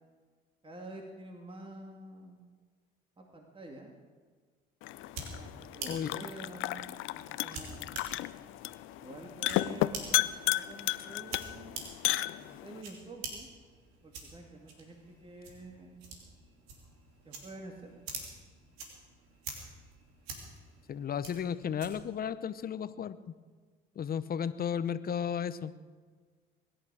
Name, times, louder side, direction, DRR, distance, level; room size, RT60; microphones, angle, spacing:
voice 1, 0.6-2.4 3.2-3.9 5.3-6.8 7.1-8.0 9.0-11.9 12.4-13.5 14.0-16.0 17.2-18.0, right 2 dB, 25° right, 1 dB, 2.4 m, -48 dB
sound 1, 4.8-12.8, left 16 dB, 70° left, 0.6 m, -34 dB
sound 2, 4.8-22.2, right 4 dB, 85° right, 3.0 m, -47 dB
voice 2, 5.8-6.2 20.9-23.3 24.0-25.7, left 8 dB, 45° left, 14 dB, 0.8 m, -34 dB
23.5 x 11.0 x 4.9 m, 1.5 s
supercardioid pair, 65°, 21 cm